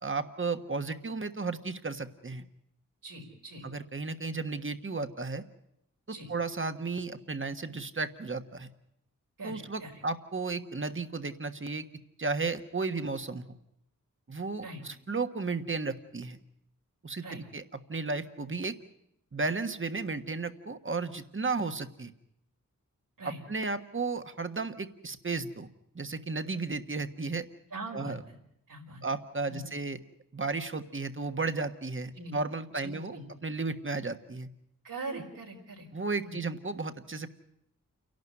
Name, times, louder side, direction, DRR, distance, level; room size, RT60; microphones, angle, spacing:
voice 1, 0.0-2.4 3.6-5.4 6.1-8.7 9.4-11.8 12.2-13.6 14.3-16.4 17.0-17.6 17.9-18.8 19.3-22.1 23.2-25.7 25.9-27.5 27.9-28.2 29.0-30.0 30.3-34.5 35.1-35.2 35.9-37.3, right 3 dB, 40° right, 9 dB, 1.5 m, -34 dB
voice 2, 3.0-3.7 6.1-6.3 9.4-9.9 14.6-14.8 17.2-17.4 23.2-23.4 27.7-28.3 28.7-29.0 29.5-29.7 32.2-32.4 32.8-33.3 34.8-35.9 36.2-36.4, right 2 dB, 80° right, 0 dB, 5.0 m, -42 dB
29.0 x 12.0 x 9.7 m, 0.79 s
cardioid pair, 55°, 33 cm